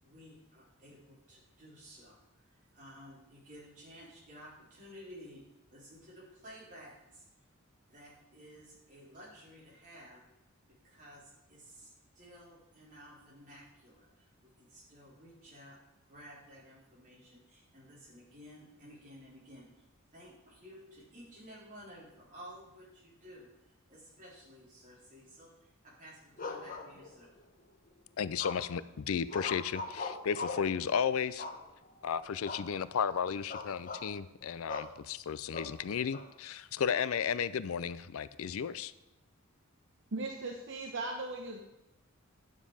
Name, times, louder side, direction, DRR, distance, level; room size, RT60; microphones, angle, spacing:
voice 1, 0.0-5.4 5.7-7.3 7.9-10.2 10.8-15.8 16.1-19.8 20.1-27.3, equal, 40° right, -5 dB, 4.1 m, -54 dB
sound 1, 26.4-27.4 28.4-28.9 29.3-30.7 31.4-32.0 32.4-32.7 33.0-33.2 33.5-34.1 34.7-34.9 35.5-36.3, left 4 dB, 40° left, 1.0 m, -41 dB
voice 2, 28.2-31.5 32.0-38.9, left 7 dB, 75° left, 16 dB, 0.4 m, -34 dB
voice 3, 40.1-41.6, right 2 dB, 60° right, 2 dB, 1.0 m, -38 dB
11.0 x 7.4 x 5.0 m, 0.92 s
head